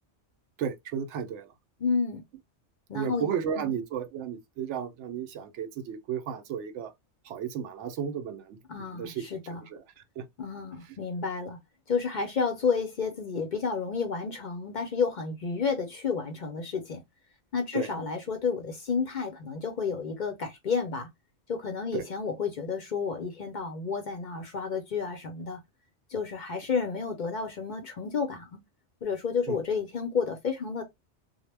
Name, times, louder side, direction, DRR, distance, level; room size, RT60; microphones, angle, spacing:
voice 1, 0.6-1.5 2.9-6.9 7.2-9.8 10.2-10.3 17.7-17.9 21.9-22.1 29.5-29.6, right 8 dB, 85° right, 0.9 m, -34 dB
voice 2, 1.8-2.2 2.9-3.8 8.7-9.6 10.4-11.6 11.9-17.0 17.5-21.1 21.5-25.6 26.1-28.6 29.0-30.8, left 5 dB, 50° left, 0.6 m, -31 dB
2.0 x 2.0 x 3.2 m
omnidirectional pair, 1.2 m